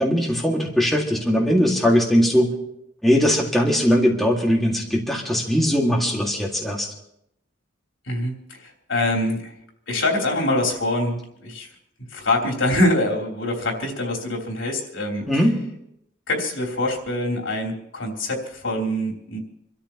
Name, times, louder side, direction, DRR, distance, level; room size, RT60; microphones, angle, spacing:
voice 1, 0.0-2.5 3.0-6.9 15.3-15.6, equal, ahead, -3 dB, 2.0 m, -20 dB
voice 2, 8.1-9.5 9.9-11.7 12.1-15.5 16.3-19.4, left 1 dB, 80° left, -1 dB, 3.4 m, -24 dB
27.5 x 13.5 x 3.0 m, 0.78 s
head